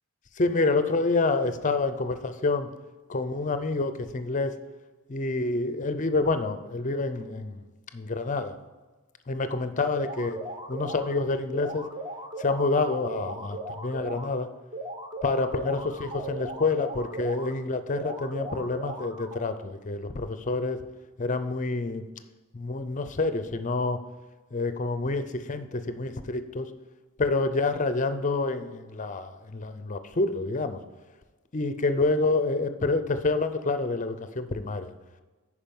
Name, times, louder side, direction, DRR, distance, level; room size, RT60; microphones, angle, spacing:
voice 1, 0.4-2.7 3.1-4.5 5.1-7.6 7.9-8.6 9.3-10.4 10.7-11.9 12.4-14.5 15.2-20.8 21.2-22.0 22.5-24.0 24.5-26.7 27.2-30.8 31.5-34.9, left 3 dB, 35° left, 11 dB, 0.6 m, -27 dB
sound 1, 9.9-11.1 11.5-14.3 14.7-17.5 17.9-19.5, right 1 dB, 20° right, 0.8 m, -38 dB
10.0 x 4.8 x 5.3 m, 1.3 s
head